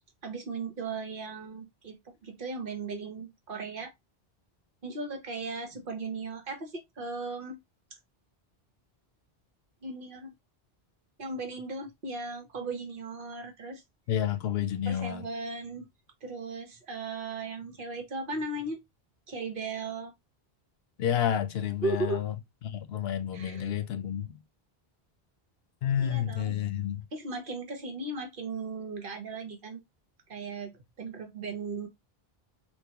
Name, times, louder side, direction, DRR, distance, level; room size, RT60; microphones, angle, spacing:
voice 1, 0.2-3.9 4.8-7.6 9.8-10.3 11.2-13.8 14.9-15.9 16.2-18.8 19.3-20.1 21.8-22.2 23.3-23.7 26.0-26.5 27.1-29.8 30.3-30.7 31.0-31.9, right 3 dB, 60° right, 1.0 m, -37 dB
voice 2, 14.1-15.3 21.0-22.3 22.6-24.4 25.8-27.0, left 9 dB, 80° left, 0.8 m, -30 dB
3.7 x 2.3 x 2.8 m
omnidirectional pair, 1.0 m